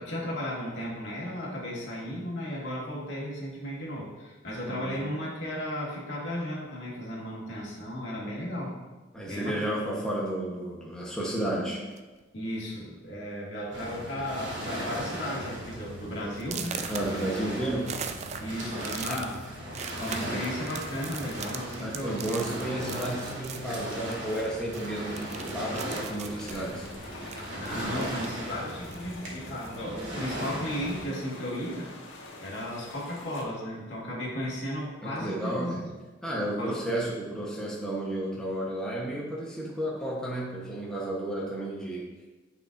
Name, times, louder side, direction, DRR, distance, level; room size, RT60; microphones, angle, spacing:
voice 1, 0.0-8.7 9.3-9.7 12.3-16.8 18.4-19.4 19.9-22.2 27.6-31.9 32.4-35.9 36.6-36.8, equal, 65° left, -5 dB, 2.0 m, -35 dB
voice 2, 4.7-5.1 9.1-11.8 16.9-17.9 21.8-26.9 27.9-28.1 35.0-35.8 36.2-42.1, right 1 dB, 5° left, -5 dB, 1.0 m, -32 dB
sound 1, 11.9-12.2 13.0-13.1 13.5-13.8 14.1-14.5 15.0-15.1 15.5-15.6 16.4-24.5 24.7-28.5 28.8-29.9, right 6 dB, 35° right, 0.4 m, -41 dB
Waves surf, 13.7-31.0, right 1 dB, 70° right, 2.0 m, -37 dB
sound 2, 26.3-33.4, left 2 dB, 80° left, 1.3 m, -46 dB
9.2 x 5.6 x 2.6 m, 1.2 s
head